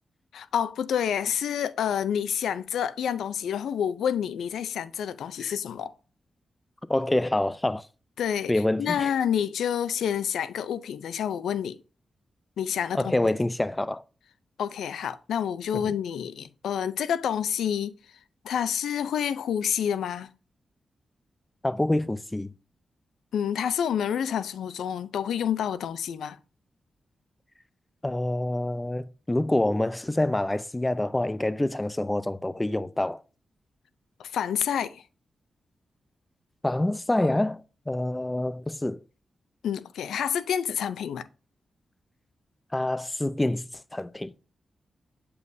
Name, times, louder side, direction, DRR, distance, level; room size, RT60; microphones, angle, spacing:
voice 1, 0.3-5.9 8.2-8.5 8.8-11.8 12.6-13.1 14.6-17.9 18.4-20.3 23.3-26.4 34.2-35.0 39.6-41.3, left 8 dB, 90° left, 0.4 m, -28 dB
voice 2, 6.9-7.8 8.5-9.1 12.9-14.0 15.7-15.9 21.6-22.5 28.0-33.2 36.6-37.6 37.9-39.0 42.7-44.3, left 1 dB, 15° left, 0.5 m, -26 dB
8.0 x 5.5 x 2.6 m
cardioid pair, 50°, 0 cm